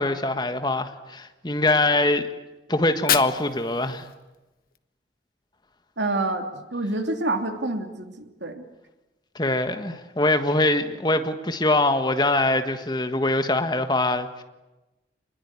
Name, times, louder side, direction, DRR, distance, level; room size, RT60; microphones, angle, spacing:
voice 1, 0.0-2.3 2.7-4.1 9.3-14.4, left 2 dB, 25° left, 8 dB, 1.6 m, -23 dB
Fire, 2.8-4.8, left 10 dB, 55° left, 1.0 m, -30 dB
voice 2, 6.0-6.5 6.7-8.6, right 2 dB, 90° right, 5 dB, 2.9 m, -27 dB
27.0 x 21.0 x 9.7 m, 1.1 s
head